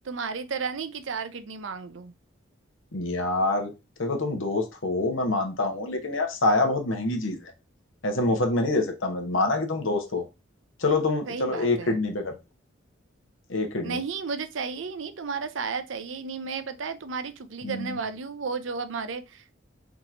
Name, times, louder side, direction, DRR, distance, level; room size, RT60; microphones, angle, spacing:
voice 1, 0.0-2.1 11.3-12.0 13.8-19.6, right 5 dB, 75° right, 0.6 m, -33 dB
voice 2, 2.9-3.7 4.0-7.5 8.0-10.3 10.8-12.4 13.5-14.0 17.6-18.0, left 2 dB, 80° left, 1.1 m, -26 dB
3.7 x 3.0 x 3.6 m
head